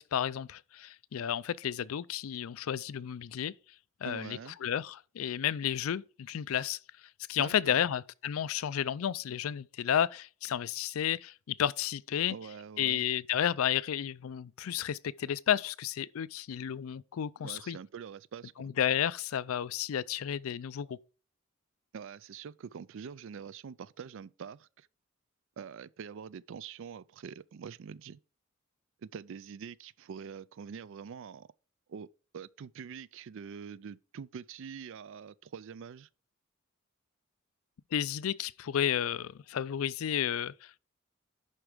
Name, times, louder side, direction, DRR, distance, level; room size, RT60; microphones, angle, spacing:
voice 1, 0.0-3.5 4.0-6.8 7.3-12.4 12.8-17.8 18.6-21.0 37.9-40.8, left 9 dB, 80° left, 0.4 m, -32 dB
voice 2, 4.0-4.6 7.4-7.9 12.3-13.1 17.4-18.7 21.9-24.9 25.6-28.2 29.0-31.5 31.9-32.1 32.3-36.1, right 6 dB, 65° right, 0.4 m, -45 dB
11.0 x 4.5 x 5.0 m
head